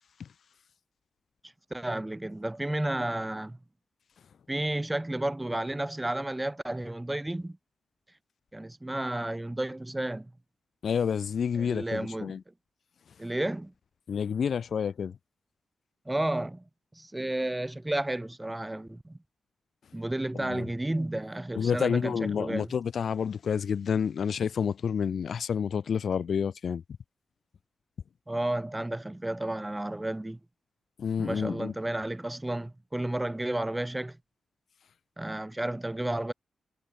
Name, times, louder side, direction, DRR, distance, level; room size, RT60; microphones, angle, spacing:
voice 1, 1.7-3.6 4.5-7.6 8.5-10.3 11.6-12.4 13.2-13.7 16.1-16.6 16.9-19.2 19.9-22.7 28.3-30.4 31.2-34.2 35.2-36.3, right 1 dB, 10° right, 3.7 m, -32 dB
voice 2, 10.8-12.4 14.1-15.1 20.3-20.7 21.5-26.8 31.0-31.7, left 7 dB, 60° left, 1.4 m, -29 dB
wide cardioid pair, 155°, 0 cm